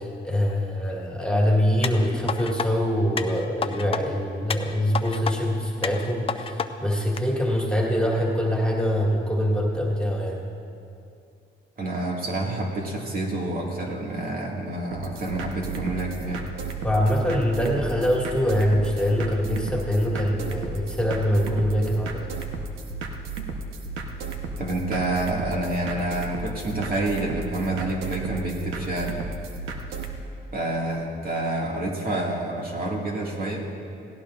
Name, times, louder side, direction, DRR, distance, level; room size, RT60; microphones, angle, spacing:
voice 1, 0.0-10.4 16.8-22.3, equal, 5° left, -3 dB, 2.2 m, -24 dB
sound 1, 1.8-2.7 3.2-4.0 4.5-5.4 5.8-6.7 7.2-7.3, left 5 dB, 30° left, 0.6 m, -29 dB
voice 2, 11.8-16.5 24.6-29.2 30.5-33.6, right 2 dB, 45° right, -2 dB, 2.1 m, -28 dB
sound 2, 14.9-30.2, right 3 dB, 90° right, 1.1 m, -34 dB
17.0 x 17.0 x 2.6 m, 2.5 s
cardioid pair, 90°, 20 cm